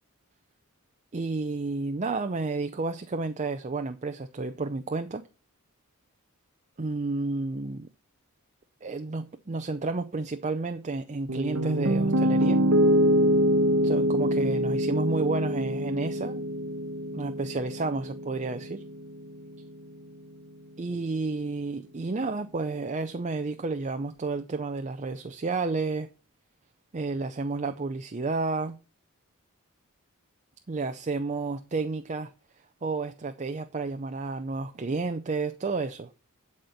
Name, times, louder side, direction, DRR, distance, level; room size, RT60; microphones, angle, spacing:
voice 1, 1.1-5.2 6.8-7.9 8.8-12.6 13.8-16.4 17.1-18.8 20.8-26.1 26.9-28.8 30.7-32.3 32.8-36.1, right 3 dB, 35° right, 0.6 m, -31 dB
Piano, 11.3-19.4, equal, 65° right, 1.0 m, -25 dB
11.5 x 4.3 x 6.5 m
head